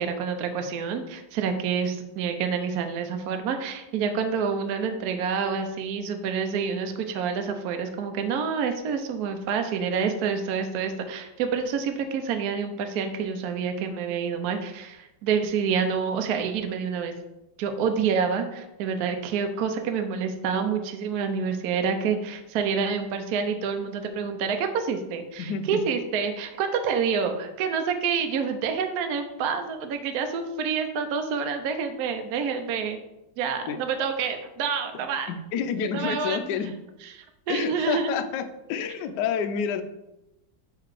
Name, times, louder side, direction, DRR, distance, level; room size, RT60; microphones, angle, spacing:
voice 1, 0.0-17.1 17.6-33.0 33.4-35.3 35.9-36.5 37.5-38.1, right 6 dB, 85° right, 6 dB, 0.8 m, -28 dB
voice 2, 25.4-25.8 33.7-33.8 34.9-36.7 37.5-39.8, left 7 dB, 85° left, 8 dB, 0.9 m, -29 dB
5.8 x 3.7 x 4.7 m, 0.95 s
omnidirectional pair, 2.4 m